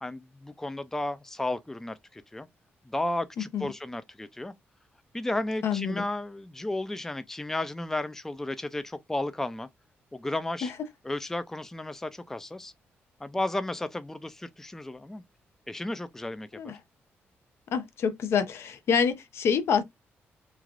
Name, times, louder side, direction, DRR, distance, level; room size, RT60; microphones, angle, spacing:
voice 1, 0.0-2.5 2.9-4.5 5.1-9.7 10.1-10.7 11.0-12.7 13.2-15.2 15.7-16.7, left 2 dB, 10° left, 0.3 m, -33 dB
voice 2, 5.6-6.0 16.5-16.8 17.7-19.8, left 6 dB, 75° left, 0.5 m, -27 dB
3.2 x 2.4 x 2.4 m
cardioid pair, 85°, 4 cm